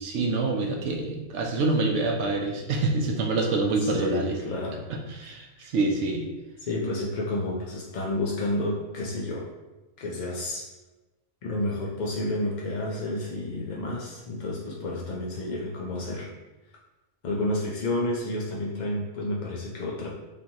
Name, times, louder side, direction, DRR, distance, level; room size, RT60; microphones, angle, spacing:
voice 1, 0.0-4.4 4.9-6.2, right 3 dB, 70° right, 2 dB, 0.9 m, -26 dB
voice 2, 3.8-4.8 6.6-9.5 10.0-10.6 11.4-16.3 17.2-20.1, left 1 dB, 60° left, -3 dB, 0.5 m, -30 dB
5.1 x 2.9 x 2.8 m, 1.1 s
omnidirectional pair, 1.4 m